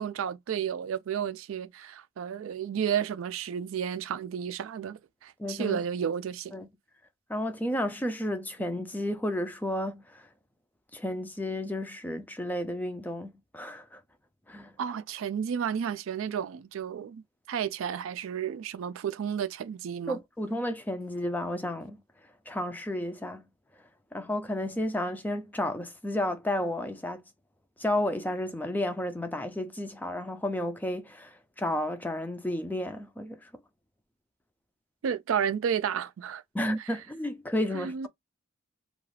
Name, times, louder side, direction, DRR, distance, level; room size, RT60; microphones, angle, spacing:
voice 1, 0.0-6.6 14.8-20.2 35.0-36.4 36.8-36.9 37.7-38.1, right 8 dB, 85° right, 0.3 m, -32 dB
voice 2, 5.4-5.8 6.5-6.7 7.3-10.3 10.9-14.0 14.5-14.7 20.1-22.0 22.5-23.5 24.1-27.2 27.8-33.4 36.5-38.1, left 1 dB, 10° left, 0.3 m, -32 dB
2.3 x 2.2 x 3.2 m
head